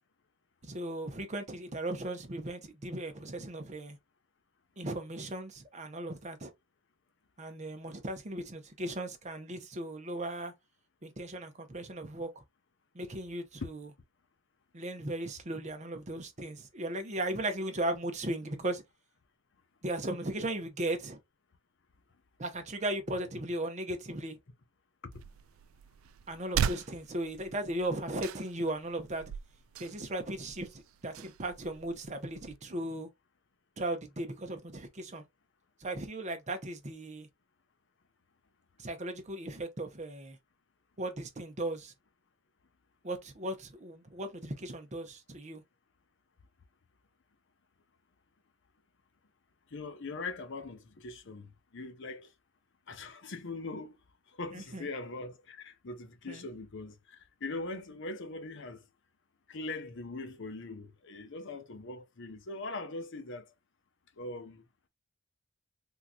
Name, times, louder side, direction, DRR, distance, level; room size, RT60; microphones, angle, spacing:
voice 1, 0.6-4.0 4.8-6.5 7.4-10.5 11.0-12.3 12.9-13.9 14.7-18.8 19.8-21.2 22.4-24.4 26.3-29.2 29.8-33.1 33.8-35.2 35.8-37.3 38.8-40.4 41.0-41.9 43.0-45.6 54.5-54.9 56.3-56.5, right 1 dB, 35° right, 0.8 m, -37 dB
sound 1, 25.1-32.6, right 8 dB, 75° right, 0.3 m, -39 dB
voice 2, 49.7-52.3 52.9-54.0 54.3-58.8 59.5-63.5 64.2-64.6, left 3 dB, 60° left, 0.8 m, -41 dB
3.7 x 2.9 x 2.3 m
head